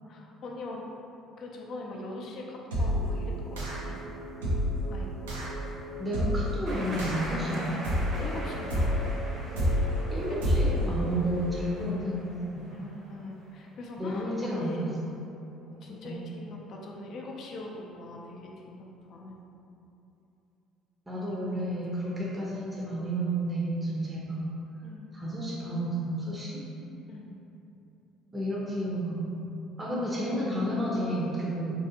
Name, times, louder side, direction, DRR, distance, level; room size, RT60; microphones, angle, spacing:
voice 1, 0.1-0.9 1.4-4.0 4.9-5.3 8.2-8.9 10.3-10.4 12.7-14.9 15.8-19.5 21.3-21.4 22.2-22.4 24.8-25.1 27.1-27.4, left 2 dB, 60° left, -1 dB, 0.5 m, -42 dB
sound 1, 2.7-11.9, left 1 dB, 40° left, 0.8 m, -43 dB
sound 2, 2.7-3.1 3.6-4.0 4.4-4.8 5.3-5.6 6.1-6.6 7.0-7.4 7.8-8.3 8.7-9.1 9.6-10.0 10.4-10.8, equal, 90° right, 0.5 m, -27 dB
voice 2, 6.0-7.9 10.1-12.3 12.5-12.8 14.0-14.9 15.8-16.1 21.1-24.4 25.1-26.6 28.3-29.5 29.8-31.7, right 1 dB, 15° right, -5 dB, 0.6 m, -31 dB
sound 3, 6.7-13.3, right 1 dB, 55° right, 0.9 m, -42 dB
3.2 x 2.6 x 2.7 m, 2.9 s
hypercardioid pair, 60°, 0 cm